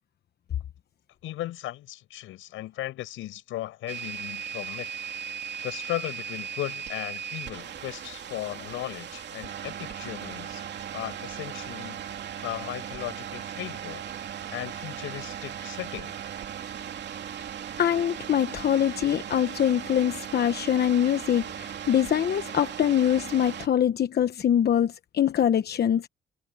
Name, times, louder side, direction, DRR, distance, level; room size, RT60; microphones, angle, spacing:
voice 1, 1.2-4.9 5.6-10.6 10.9-12.1 12.4-14.1 14.5-16.2, left 15 dB, 90° left, 6.3 m, -36 dB
sound 1, 3.9-23.7, right 8 dB, 60° right, 2.8 m, -37 dB
voice 2, 17.8-26.1, left 10 dB, 55° left, 1.0 m, -24 dB
cardioid pair, 90°, 20 cm